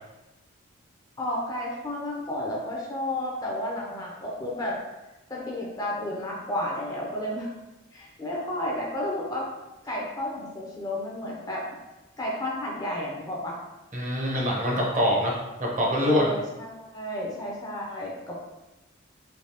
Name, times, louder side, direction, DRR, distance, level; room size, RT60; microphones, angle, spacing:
voice 1, 1.2-4.8 5.3-7.5 7.9-9.4 9.8-11.6 12.2-13.6 16.0-18.3, left 1 dB, 20° left, -3 dB, 0.5 m, -32 dB
voice 2, 13.9-16.3, equal, 35° right, -3 dB, 0.7 m, -25 dB
3.2 x 2.8 x 2.8 m, 1.0 s
head